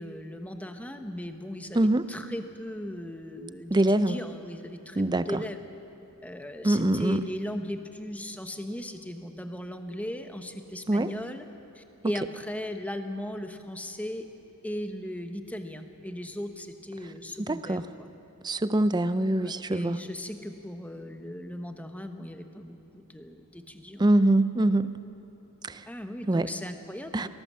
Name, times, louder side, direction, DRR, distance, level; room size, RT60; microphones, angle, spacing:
voice 1, 0.0-1.8 2.1-5.6 6.2-11.4 11.7-14.3 14.6-18.1 19.4-24.0 25.9-27.3, left 1 dB, 5° left, 6 dB, 1.1 m, -37 dB
voice 2, 3.7-4.2 5.0-5.4 6.6-7.2 10.9-11.1 17.5-17.8 18.4-20.0 24.0-25.0 25.6-25.8 26.3-26.5 27.1-27.3, right 1 dB, 20° right, 13 dB, 0.5 m, -24 dB
22.0 x 18.0 x 7.4 m, 2.8 s
head